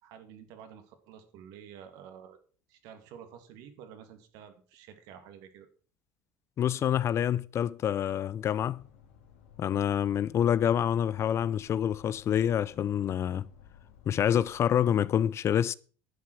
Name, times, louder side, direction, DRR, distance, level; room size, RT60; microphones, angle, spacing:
voice 1, 0.0-2.4 2.7-5.7, right 8 dB, 70° right, 2.3 m, -50 dB
voice 2, 6.6-8.8 9.6-13.5 14.1-15.7, left 9 dB, 40° left, 0.5 m, -27 dB
sound 1, 8.4-14.8, left 9 dB, 85° left, 2.5 m, -56 dB
11.0 x 7.5 x 6.1 m
supercardioid pair, 100°, 7 cm